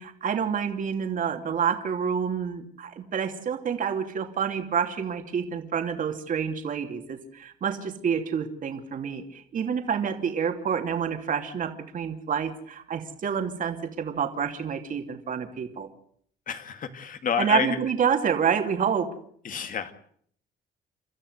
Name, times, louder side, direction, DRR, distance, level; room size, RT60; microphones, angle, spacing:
voice 1, 0.0-15.9 17.4-19.1, right 7 dB, 50° right, 5 dB, 2.8 m, -28 dB
voice 2, 16.5-17.8 19.4-20.0, left 6 dB, 50° left, 8 dB, 2.4 m, -29 dB
30.0 x 13.5 x 8.1 m, 0.63 s
cardioid pair, 110°, 17 cm